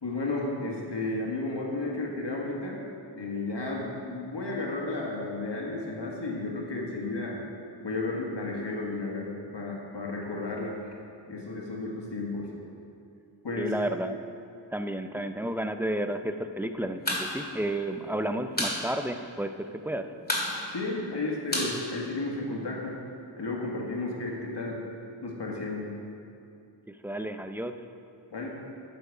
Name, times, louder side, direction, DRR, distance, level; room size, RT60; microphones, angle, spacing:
voice 1, 0.0-2.9 3.1-7.4 7.8-10.8 11.3-12.5 13.4-13.7 20.7-23.0 23.4-24.8 25.2-25.9 28.3-28.5, left 2 dB, 70° left, -2 dB, 1.8 m, -33 dB
voice 2, 13.6-14.2 14.7-20.1 26.9-27.9, right 1 dB, 5° right, 8 dB, 0.4 m, -32 dB
sound 1, 16.9-17.3 17.5-17.6 17.9-18.8 19.1-19.2 19.5-19.9 20.2-22.6, left 1 dB, 20° left, 2.0 m, -30 dB
12.0 x 6.9 x 4.8 m, 2.5 s
wide cardioid pair, 75°, 44 cm